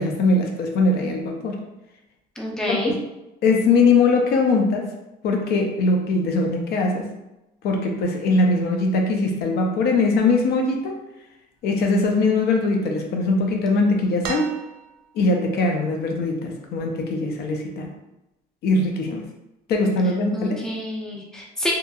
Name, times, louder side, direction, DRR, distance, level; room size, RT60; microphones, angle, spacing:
voice 1, 0.0-1.6 2.7-2.9 3.4-4.9 5.2-7.1 7.6-11.0 11.6-14.5 15.1-17.9 18.6-19.3 19.7-20.6, left 3 dB, 70° left, 2 dB, 0.5 m, -21 dB
voice 2, 2.4-2.9 20.3-21.7, left 1 dB, 5° left, -2 dB, 0.5 m, -28 dB
sound 1, 14.2-15.3 16.8-16.9, right 6 dB, 60° right, 0.5 m, -34 dB
2.7 x 2.6 x 2.3 m, 0.95 s
cardioid pair, 110°, 17 cm